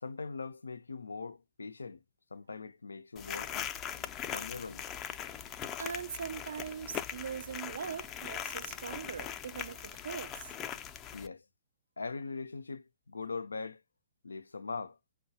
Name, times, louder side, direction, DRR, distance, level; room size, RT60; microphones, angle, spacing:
voice 1, 0.0-2.0 2.3-4.9 11.1-11.5 12.0-13.8 14.2-15.0, left 4 dB, 90° left, 0.4 m, -41 dB
sound 1, 3.2-11.3, left 9 dB, 25° left, 0.4 m, -40 dB
voice 2, 5.8-10.5, right 7 dB, 65° right, 0.3 m, -41 dB
4.6 x 2.2 x 2.6 m
hypercardioid pair, 125°, 0 cm